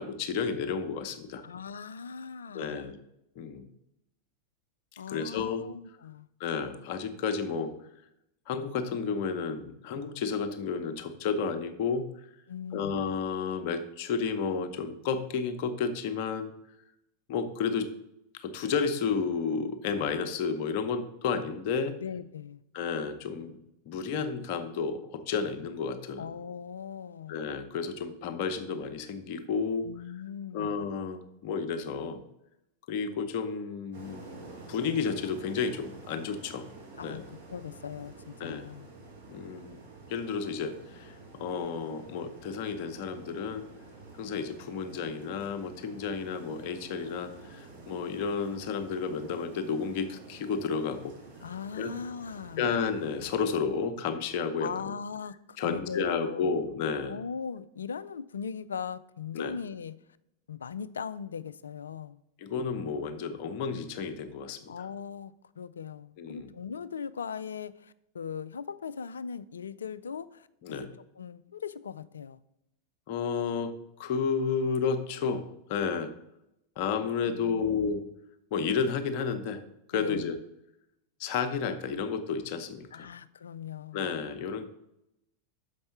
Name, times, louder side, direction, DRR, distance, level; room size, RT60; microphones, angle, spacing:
voice 1, 0.0-1.4 2.5-3.0 3.4-3.7 5.1-5.6 6.4-7.7 8.5-12.1 12.7-16.5 17.3-17.9 18.3-22.0 22.7-23.6 23.9-26.3 27.3-29.9 30.5-32.2 32.9-36.7 37.0-37.2 38.4-38.7 39.3-39.8 40.1-41.1 41.4-43.7 44.2-51.1 51.8-51.9 52.6-54.7 55.6-57.2 59.3-59.5 62.4-64.9 66.2-66.5 70.6-70.9 73.1-76.1 76.8-78.0 78.5-79.6 79.9-80.4 81.2-83.1 83.9-84.7, left 5 dB, 45° left, 0.8 m, -31 dB
voice 2, 1.4-2.9 5.0-6.3 12.5-13.0 22.0-22.6 26.2-27.4 29.8-30.8 37.0-38.9 51.4-52.7 54.6-56.5 57.1-60.0 60.5-62.2 64.7-70.9 71.2-72.4 77.3-77.9 79.9-80.4 82.9-84.1, left 6 dB, 70° left, 0.3 m, -39 dB
sound 1, 33.9-53.4, right 3 dB, 65° right, 2.3 m, -49 dB
6.6 x 5.3 x 5.7 m
figure-of-eight pair, 90°, 0 cm